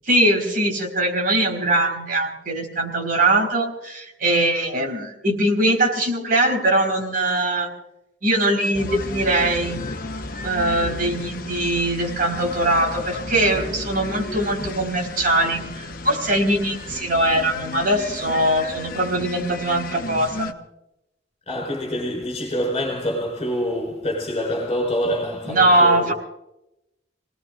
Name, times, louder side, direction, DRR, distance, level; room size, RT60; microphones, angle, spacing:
voice 1, 0.1-7.7 8.2-9.8 10.4-20.5 25.4-26.1, right 1 dB, 55° right, 4.6 m, -21 dB
sound 1, 8.7-20.5, left 2 dB, 55° left, 1.2 m, -33 dB
voice 2, 21.5-26.1, equal, 35° left, 4.6 m, -26 dB
29.0 x 19.0 x 2.5 m
head